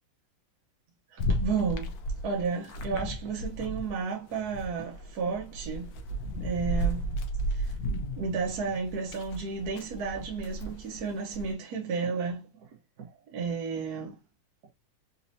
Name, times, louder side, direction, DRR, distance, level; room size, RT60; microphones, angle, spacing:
voice 1, 1.1-1.9 2.2-7.1 7.5-7.7 8.2-12.7 13.0-14.2, right 5 dB, 60° right, 1.1 m, -33 dB
sound 1, 1.2-4.0 4.3-11.5, right 1 dB, 65° left, 0.9 m, -34 dB
4.1 x 2.9 x 2.6 m
omnidirectional pair, 2.3 m